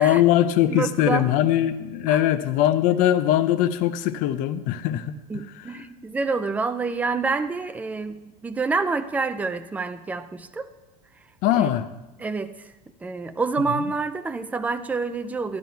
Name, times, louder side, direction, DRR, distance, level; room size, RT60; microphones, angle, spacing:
voice 1, 0.0-5.4 11.4-11.9 13.7-13.8, left 12 dB, 45° left, 11 dB, 0.6 m, -21 dB
voice 2, 0.7-1.3 2.1-2.2 5.3-10.7 11.5-11.7 12.2-12.7 13.0-15.6, right 4 dB, 10° right, 10 dB, 0.4 m, -27 dB
12.5 x 11.0 x 4.6 m, 1.0 s
supercardioid pair, 155°, 18 cm